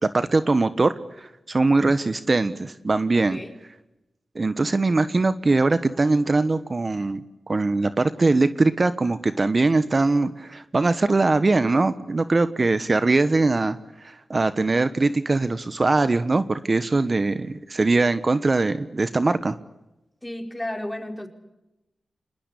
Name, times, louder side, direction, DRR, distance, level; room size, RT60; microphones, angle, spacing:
voice 1, 0.0-3.4 4.3-7.2 7.5-19.6, right 3 dB, 45° right, 12 dB, 1.3 m, -21 dB
voice 2, 20.2-21.3, left 1 dB, 15° left, 4 dB, 4.8 m, -33 dB
27.5 x 20.5 x 8.4 m, 0.97 s
cardioid pair, 45°, 0 cm